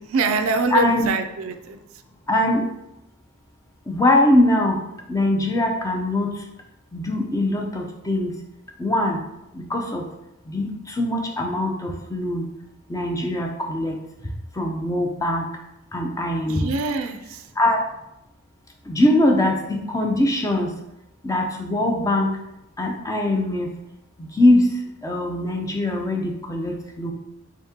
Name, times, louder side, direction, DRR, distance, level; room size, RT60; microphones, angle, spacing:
voice 1, 0.0-1.8 16.5-17.4, right 3 dB, 65° right, 8 dB, 0.3 m, -24 dB
voice 2, 0.7-1.1 2.3-2.7 3.9-4.8 5.1-6.4 6.9-8.3 8.8-9.2 9.5-10.0 10.5-12.5 12.9-13.9 14.5-15.5 15.9-16.7 17.6-17.8 18.9-20.7 21.2-22.3 22.8-23.7 24.2-27.1, left 1 dB, 15° left, 2 dB, 0.4 m, -22 dB
3.6 x 3.5 x 2.8 m, 0.88 s
head